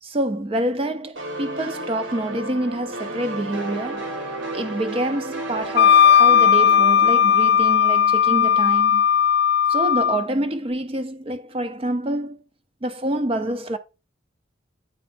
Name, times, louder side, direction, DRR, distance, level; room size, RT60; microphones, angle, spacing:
voice 1, 0.0-4.1 4.5-9.1 9.7-12.4 12.8-13.8, right 1 dB, 30° right, 0.5 m, -27 dB
sound 1, 1.2-8.6, right 1 dB, 70° right, 1.5 m, -33 dB
Wind instrument woodwind instrument, 5.8-10.2, left 8 dB, 55° left, 0.3 m, -16 dB
8.5 x 4.2 x 4.3 m
head